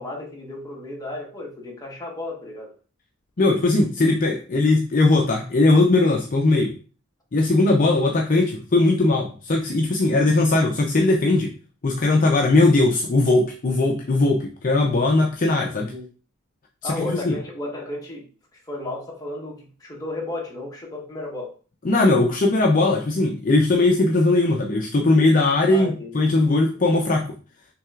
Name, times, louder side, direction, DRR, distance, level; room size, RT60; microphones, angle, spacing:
voice 1, 0.0-2.7 15.9-16.1 16.8-21.6 25.7-26.4 26.7-26.8, left 2 dB, 15° left, -2 dB, 1.2 m, -34 dB
voice 2, 3.4-6.7 7.3-11.5 11.8-15.9 16.8-17.4 21.8-27.3, left 2 dB, 40° left, 1 dB, 0.5 m, -19 dB
5.9 x 3.3 x 2.4 m, 0.37 s
head